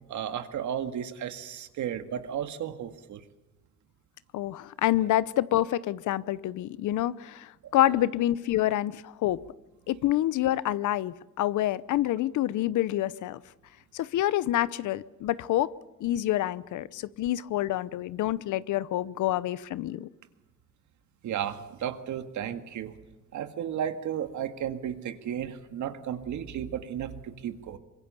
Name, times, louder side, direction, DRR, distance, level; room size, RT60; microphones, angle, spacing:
voice 1, 0.1-3.2 7.6-8.0 21.2-22.9 23.3-27.8, right 9 dB, 75° right, 8 dB, 1.9 m, -34 dB
voice 2, 4.3-9.4 9.9-13.4 13.9-15.7 16.0-20.1, left 14 dB, 80° left, 18 dB, 0.8 m, -27 dB
25.0 x 22.5 x 6.9 m, 1.1 s
cardioid pair, 90°, 30 cm